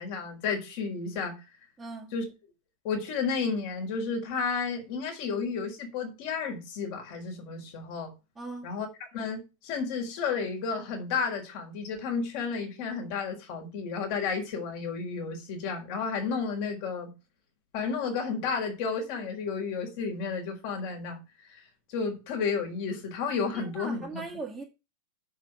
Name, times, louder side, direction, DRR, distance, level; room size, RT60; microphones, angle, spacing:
voice 1, 0.0-1.4 2.1-2.3 2.8-8.1 8.6-8.9 9.1-17.1 17.7-21.2 21.9-24.2, left 5 dB, 45° left, 4.5 m, -32 dB
voice 2, 1.8-2.1 8.4-8.8 23.5-24.6, right 3 dB, 10° right, 2.0 m, -39 dB
7.4 x 7.1 x 6.1 m
figure-of-eight pair, 90°, 0 cm